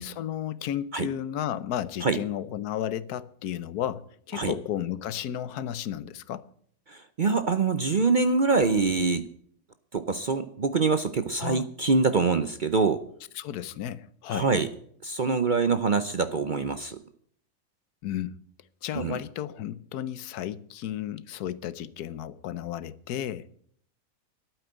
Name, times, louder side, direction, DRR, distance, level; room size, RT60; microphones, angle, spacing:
voice 1, 0.0-6.5 11.4-11.7 13.3-14.5 18.0-18.4 18.8-23.5, left 11 dB, 85° left, 1.3 m, -33 dB
voice 2, 6.9-9.3 9.9-13.0 14.3-14.7 15.0-17.0 18.9-19.2, right 4 dB, 45° right, 0.6 m, -25 dB
12.0 x 9.0 x 8.9 m
omnidirectional pair, 1.6 m